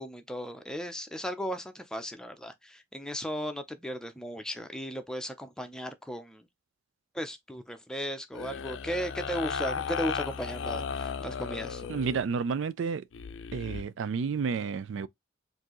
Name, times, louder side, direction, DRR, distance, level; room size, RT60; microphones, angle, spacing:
voice 1, 0.0-6.5 7.1-11.9, equal, 5° left, 0.6 m, -36 dB
sound 1, 8.3-12.3 13.1-13.8, left 6 dB, 85° left, 0.5 m, -35 dB
voice 2, 11.9-13.0 13.5-15.1, right 5 dB, 80° right, 0.4 m, -30 dB
4.4 x 2.7 x 2.9 m
head